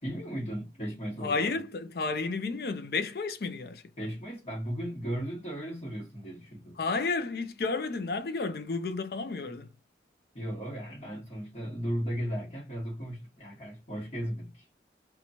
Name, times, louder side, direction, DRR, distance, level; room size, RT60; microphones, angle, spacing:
voice 1, 0.0-1.6 4.0-6.8 10.3-14.6, equal, 35° left, 1.2 m, -36 dB
voice 2, 1.2-3.8 6.8-9.7, left 4 dB, 60° left, 0.5 m, -31 dB
2.9 x 2.3 x 2.6 m
head